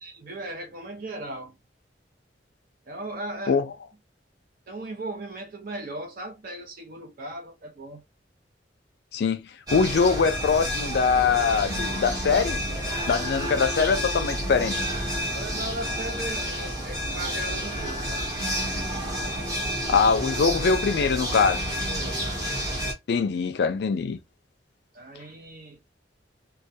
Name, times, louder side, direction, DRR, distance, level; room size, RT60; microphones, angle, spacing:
voice 1, 0.0-1.5 2.9-3.6 4.7-8.0 15.3-18.3 21.9-22.3 24.9-25.8, right 2 dB, 55° right, 0.6 m, -37 dB
voice 2, 9.1-12.6 13.1-14.8 19.9-21.6 23.1-24.2, left 5 dB, 65° left, 0.4 m, -23 dB
sound 1, 9.7-22.9, equal, 20° right, 0.9 m, -30 dB
2.2 x 2.2 x 2.6 m
head